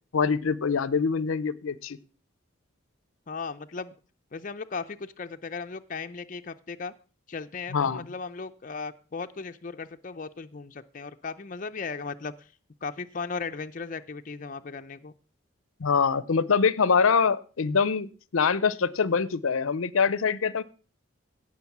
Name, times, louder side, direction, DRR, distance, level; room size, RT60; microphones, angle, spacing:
voice 1, 0.1-2.0 7.7-8.1 15.8-20.6, left 5 dB, 85° left, 20 dB, 0.6 m, -24 dB
voice 2, 3.3-3.9 4.3-6.9 7.3-12.5 12.8-15.1, left 4 dB, 40° left, 8 dB, 0.5 m, -36 dB
16.5 x 6.3 x 5.9 m, 0.39 s
head